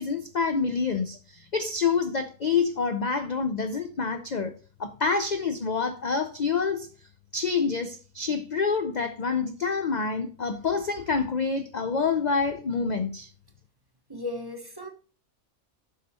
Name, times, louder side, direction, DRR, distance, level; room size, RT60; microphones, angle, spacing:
voice 1, 0.0-6.9 7.3-13.3, left 5 dB, 50° left, 0.5 m, -27 dB
voice 2, 14.1-14.9, left 2 dB, 20° right, 1.0 m, -35 dB
7.8 x 5.6 x 4.2 m
omnidirectional pair, 1.5 m